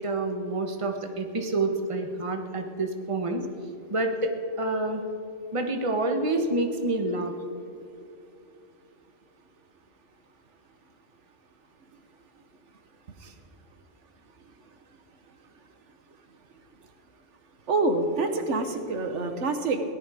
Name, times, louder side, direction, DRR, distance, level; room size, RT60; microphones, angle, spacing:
voice 1, 0.0-3.4 3.9-4.3 4.6-5.0 5.5-7.3, right 2 dB, 30° right, 4 dB, 1.2 m, -28 dB
voice 2, 17.7-19.8, right 3 dB, 80° right, 7 dB, 1.4 m, -26 dB
17.5 x 11.5 x 5.0 m, 2.6 s
omnidirectional pair, 1.2 m